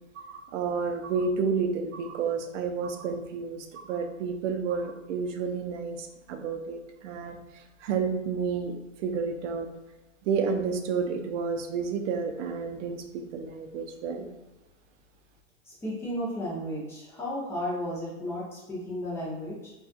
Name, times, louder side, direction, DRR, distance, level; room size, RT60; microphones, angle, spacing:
voice 1, 0.2-7.4 7.8-9.7 10.2-14.3, right 5 dB, 60° right, 5 dB, 0.5 m, -30 dB
voice 2, 15.7-19.7, equal, 5° left, -6 dB, 0.4 m, -34 dB
2.4 x 2.3 x 2.5 m, 1.1 s
hypercardioid pair, 130°, 41 cm